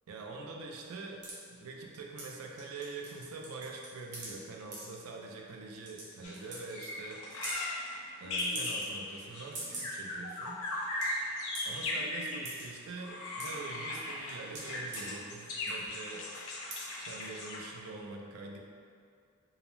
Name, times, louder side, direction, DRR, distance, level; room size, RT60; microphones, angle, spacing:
voice 1, 0.1-7.3 8.2-10.6 11.6-16.3 17.0-18.6, right 3 dB, 70° right, 0 dB, 0.3 m, -44 dB
sound 1, 1.2-1.3 2.2-2.3 2.6-3.2 3.4-4.3 4.7-4.8 5.5-5.6 5.9-6.0 6.3-6.6 6.8-6.9 7.3-7.6 8.4-9.1 9.4-9.9 10.4-10.5 10.7-11.0 11.5-11.7 12.4-12.6 13.1-13.7 14.3-15.0 15.6-15.9 16.3-16.4 16.7-16.9 17.2-17.3, right 2 dB, 30° right, 0.6 m, -42 dB
sound 2, 6.2-6.4 6.7-12.5 13.0-17.8, left 2 dB, 65° left, 0.5 m, -38 dB
2.5 x 2.0 x 3.0 m, 2.3 s
head